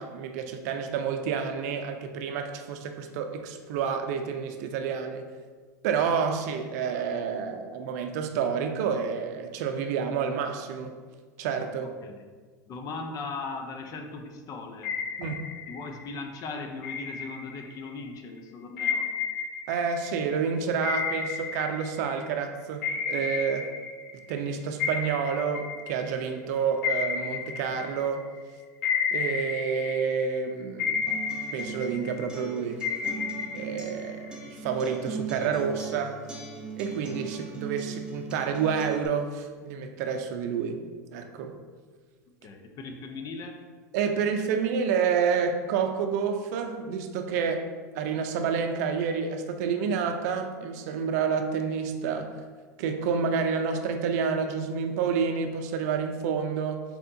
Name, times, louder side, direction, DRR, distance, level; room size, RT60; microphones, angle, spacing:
voice 1, 0.0-5.2 5.8-11.0 11.4-11.9 15.2-15.4 19.7-23.7 24.3-28.3 29.1-31.0 31.5-32.8 33.5-36.2 36.8-40.8 41.1-41.5 43.9-47.7 47.9-52.4 52.8-56.8, right 6 dB, 65° right, 6 dB, 0.5 m, -29 dB
voice 2, 11.8-12.3 12.7-14.9 15.2-19.1 42.4-43.6, left 3 dB, 40° left, 4 dB, 0.6 m, -39 dB
sound 1, 14.8-16.1 16.8-18.0 18.8-22.4 22.8-24.5 24.8-28.4 28.8-30.4 30.8-32.4 32.8-34.5, left 6 dB, 70° left, 0.8 m, -32 dB
Acoustic guitar, 31.1-39.1, right 5 dB, 10° right, 0.9 m, -39 dB
4.3 x 4.1 x 2.7 m, 1.5 s
hypercardioid pair, 95°, 10 cm